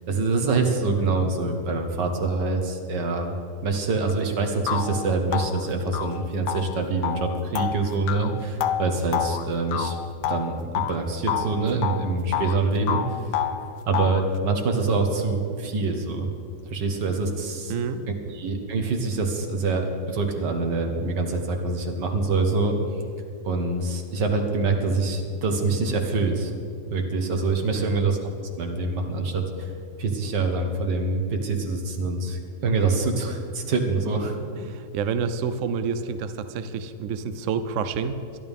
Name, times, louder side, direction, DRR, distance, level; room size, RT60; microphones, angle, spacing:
voice 1, 0.1-3.4 3.6-10.0 10.2-13.0 13.9-16.3 16.7-17.7 18.3-22.8 23.4-26.5 26.9-28.2 28.6-29.7 30.0-34.3, right 3 dB, 80° right, 4 dB, 2.0 m, -25 dB
sound 1, 4.1-4.2 4.7-11.0 11.3-12.6 12.9-14.3, left 10 dB, 75° left, 1.2 m, -29 dB
voice 2, 17.7-18.0 27.7-28.1 34.6-38.4, right 6 dB, 60° right, 10 dB, 0.8 m, -29 dB
22.5 x 11.0 x 3.6 m, 2.4 s
omnidirectional pair, 1.9 m